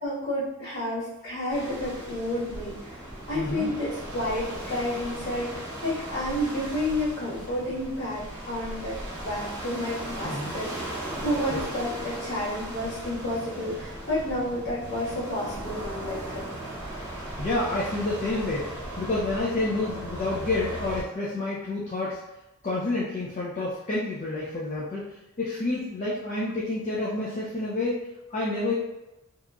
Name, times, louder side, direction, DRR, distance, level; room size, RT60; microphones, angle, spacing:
voice 1, 0.0-2.9 3.2-16.5, left 1 dB, 50° left, -10 dB, 1.3 m, -31 dB
sound 1, 1.5-21.0, right 1 dB, 15° right, 0.8 m, -37 dB
voice 2, 3.3-3.7 10.2-10.5 11.5-11.6 17.1-22.2 22.6-28.0 28.3-28.7, left 2 dB, 35° left, -5 dB, 0.3 m, -29 dB
2.9 x 2.4 x 2.2 m, 0.96 s
head